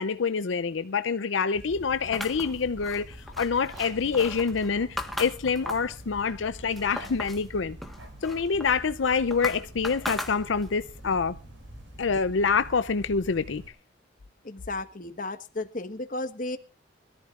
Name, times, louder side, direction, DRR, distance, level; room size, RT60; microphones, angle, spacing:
voice 1, 0.0-7.8 8.2-11.4 12.0-13.6, left 5 dB, 80° left, 0.6 m, -26 dB
City Park night quiet ducks Darmstadt, 1.5-13.7, right 1 dB, 75° right, 5.8 m, -45 dB
sound 1, 2.1-6.0 6.4-7.5 7.8-10.8, left 1 dB, ahead, 1.3 m, -38 dB
voice 2, 14.4-16.6, left 2 dB, 45° left, 1.4 m, -34 dB
23.0 x 14.0 x 2.5 m
head